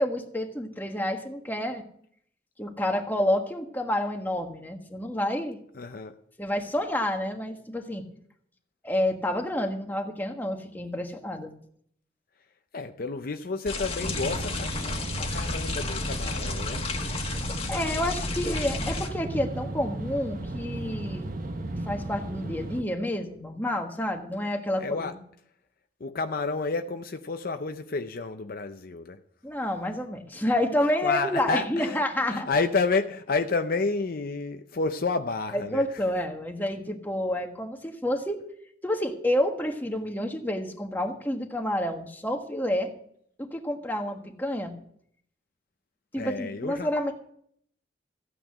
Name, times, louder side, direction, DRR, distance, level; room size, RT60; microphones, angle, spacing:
voice 1, 0.0-1.8 2.6-5.6 6.4-8.0 8.8-11.5 17.7-21.2 21.9-25.2 29.4-32.5 35.5-38.4 38.8-42.9 43.4-44.7 46.1-47.1, left 1 dB, 10° left, 1.4 m, -29 dB
voice 2, 5.8-6.2 12.7-16.9 24.8-25.1 26.0-29.2 31.0-32.0 32.3-35.8 46.2-46.9, left 4 dB, 50° left, 0.6 m, -30 dB
sound 1, 13.7-19.1, left 3 dB, 30° left, 1.7 m, -32 dB
sound 2, 14.0-22.8, right 2 dB, 50° right, 1.0 m, -35 dB
15.0 x 9.1 x 6.1 m
head